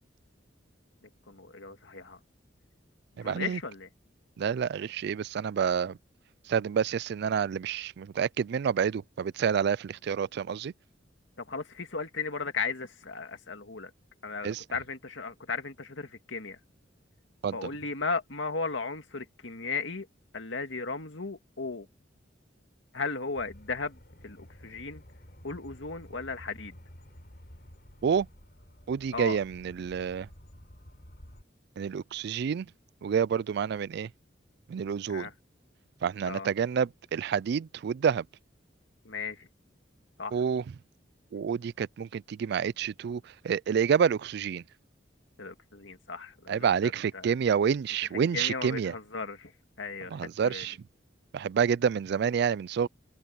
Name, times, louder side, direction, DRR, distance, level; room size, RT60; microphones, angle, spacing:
voice 1, 1.0-2.2 3.2-3.9 11.4-13.9 14.2-16.6 17.5-20.1 20.3-21.9 22.9-25.0 25.4-26.8 29.1-29.4 35.1-35.3 36.3-36.5 39.0-39.5 40.2-40.4 45.4-47.3 48.3-49.5 49.8-50.7, left 4 dB, 80° left, 2.2 m, -36 dB
voice 2, 3.2-3.6 4.4-6.0 6.5-10.7 14.4-14.6 17.4-17.6 28.0-28.3 28.9-30.3 31.8-32.7 33.0-34.1 34.7-35.3 36.0-38.3 40.3-40.6 41.3-44.6 46.5-48.9 50.1-50.8 51.3-52.9, right 7 dB, 60° right, 0.3 m, -28 dB
sound 1, 23.3-31.4, equal, 55° left, 4.1 m, -52 dB
open air
head